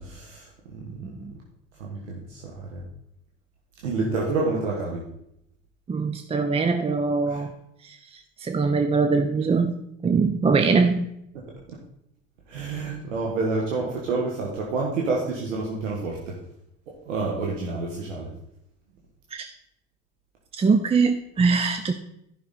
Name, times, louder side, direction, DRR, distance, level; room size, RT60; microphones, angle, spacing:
voice 1, 0.0-1.2 1.8-2.8 3.8-5.0 7.2-7.4 10.6-10.7 11.7-11.8 12.5-16.4 16.9-18.3, right 3 dB, 90° right, -2 dB, 1.5 m, -29 dB
voice 2, 5.9-7.5 7.9-8.0 8.4-9.7 10.0-11.1 19.3-19.5 20.6-21.9, right 4 dB, 15° right, 7 dB, 0.6 m, -22 dB
11.0 x 5.9 x 4.2 m, 0.79 s
hypercardioid pair, 90°, 37 cm